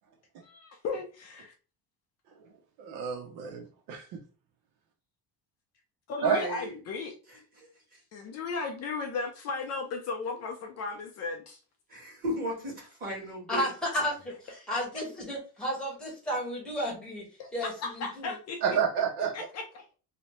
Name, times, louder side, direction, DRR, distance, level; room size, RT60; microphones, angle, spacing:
voice 1, 0.4-1.5 6.1-7.2 8.1-11.6 13.9-14.0 14.7-15.0 17.4-18.6 19.3-19.9, left 4 dB, 45° left, 0.5 m, -36 dB
voice 2, 2.8-4.2 6.2-6.4 18.6-19.3, right 7 dB, 75° right, 0.7 m, -29 dB
voice 3, 6.2-6.7 7.6-7.7 11.9-13.7, equal, 25° right, 1.4 m, -35 dB
voice 4, 13.5-17.2 17.5-18.3, equal, ahead, 0.9 m, -33 dB
2.8 x 2.1 x 3.0 m
cardioid pair, 165°, 37 cm